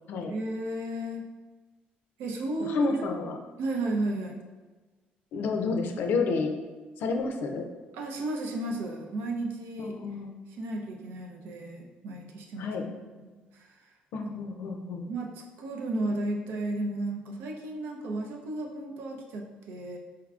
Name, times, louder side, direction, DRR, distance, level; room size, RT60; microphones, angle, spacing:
voice 1, 0.2-1.2 2.2-3.1 3.6-4.4 7.9-10.0 10.6-12.7 13.2-13.7 15.1-20.0, right 2 dB, 85° right, 1 dB, 0.6 m, -33 dB
voice 2, 2.6-3.4 5.3-6.6 7.0-7.7 9.8-10.3 12.6-12.9 14.1-15.1, left 4 dB, 70° left, 5 dB, 0.5 m, -30 dB
4.5 x 3.4 x 2.4 m, 1.3 s
cardioid pair, 135°, 4 cm